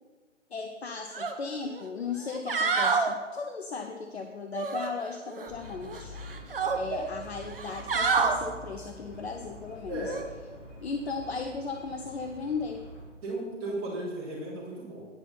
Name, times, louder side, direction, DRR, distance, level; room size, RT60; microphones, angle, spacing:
voice 1, 0.5-6.2 6.7-10.1 10.8-12.9, left 4 dB, 55° left, 5 dB, 0.8 m, -36 dB
sound 1, 1.1-1.3 1.7-1.8 2.3-3.1 4.5-5.5 5.9-6.8 7.5-8.4 10.1-10.2, right 4 dB, 50° right, 1.0 m, -28 dB
sound 2, 5.5-13.1, equal, 10° left, 0.9 m, -46 dB
voice 2, 6.5-7.1 9.9-10.2 13.2-15.1, right 2 dB, 20° right, -7 dB, 3.1 m, -36 dB
9.8 x 5.5 x 5.7 m, 1.4 s
figure-of-eight pair, 145°, 37 cm